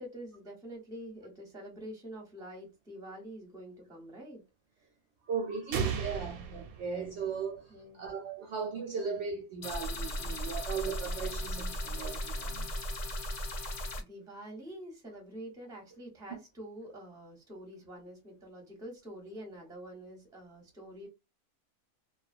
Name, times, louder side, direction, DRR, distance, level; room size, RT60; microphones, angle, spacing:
voice 1, 0.0-4.4 4.8-4.9 7.7-8.0 14.0-21.1, equal, 5° right, 0.6 m, -46 dB
voice 2, 5.3-7.6 7.9-12.7, right 6 dB, 65° right, 0.8 m, -37 dB
sound 1, 5.7-7.6, right 6 dB, 85° right, 1.0 m, -36 dB
sound 2, 9.6-14.0, equal, 85° left, 0.3 m, -36 dB
2.2 x 2.2 x 2.4 m
omnidirectional pair, 1.5 m